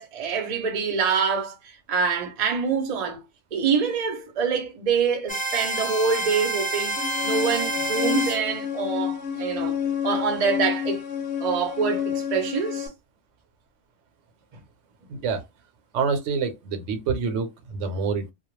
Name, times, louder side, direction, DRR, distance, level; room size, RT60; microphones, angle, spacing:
voice 1, 0.0-3.2 3.5-11.0 11.4-12.9, right 6 dB, 45° right, 0.5 m, -26 dB
sound 1, 5.3-8.4, right 2 dB, 15° left, 0.3 m, -28 dB
sound 2, 7.0-12.9, left 9 dB, 65° left, 0.8 m, -29 dB
voice 2, 15.1-15.4 15.9-18.3, right 5 dB, 75° right, 0.9 m, -27 dB
2.3 x 2.0 x 3.0 m
omnidirectional pair, 1.3 m